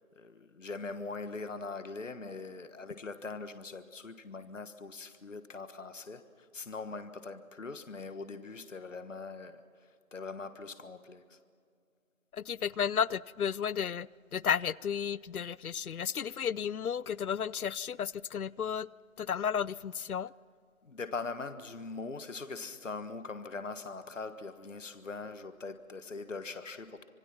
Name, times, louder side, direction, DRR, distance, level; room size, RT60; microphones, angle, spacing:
voice 1, 0.2-9.6 10.1-11.4 20.8-27.0, left 4 dB, 60° left, 1.5 m, -42 dB
voice 2, 12.3-18.9 19.2-20.3, left 8 dB, 85° left, 0.6 m, -33 dB
26.5 x 23.0 x 6.0 m
figure-of-eight pair, 170°, 42 cm